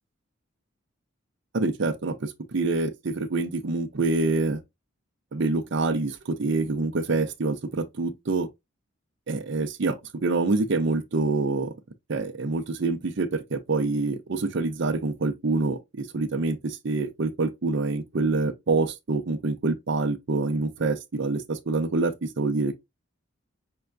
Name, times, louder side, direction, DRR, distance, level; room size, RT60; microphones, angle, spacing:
voice 1, 1.5-4.6 5.3-8.5 9.3-11.7 12.1-22.7, right 3 dB, 55° right, 0.5 m, -26 dB
5.5 x 2.2 x 2.4 m
head